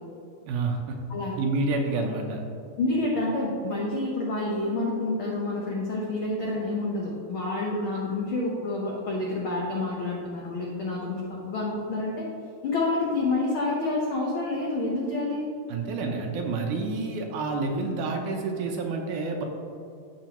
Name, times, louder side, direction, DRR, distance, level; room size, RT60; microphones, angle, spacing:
voice 1, 0.5-1.0 1.4-2.4 15.7-19.4, right 3 dB, 75° right, 2 dB, 2.1 m, -28 dB
voice 2, 2.8-12.3 12.6-15.5, left 2 dB, 80° left, -3 dB, 1.1 m, -28 dB
14.5 x 5.3 x 3.0 m, 2.5 s
omnidirectional pair, 3.9 m